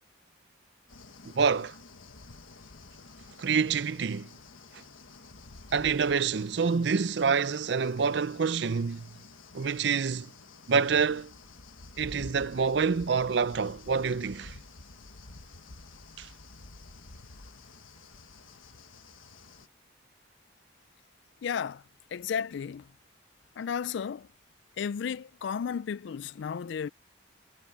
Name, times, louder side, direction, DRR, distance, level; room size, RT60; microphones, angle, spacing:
sound 1, 0.9-19.7, left 3 dB, 85° left, 1.5 m, -50 dB
voice 1, 1.4-1.8 3.4-4.3 5.7-9.1 9.5-10.3 10.7-11.3 12.0-14.6 16.2-16.3, right 5 dB, 60° right, 0.5 m, -27 dB
voice 2, 21.4-21.8 22.1-22.8 23.6-24.3 24.8-26.9, left 7 dB, 65° left, 0.3 m, -33 dB
head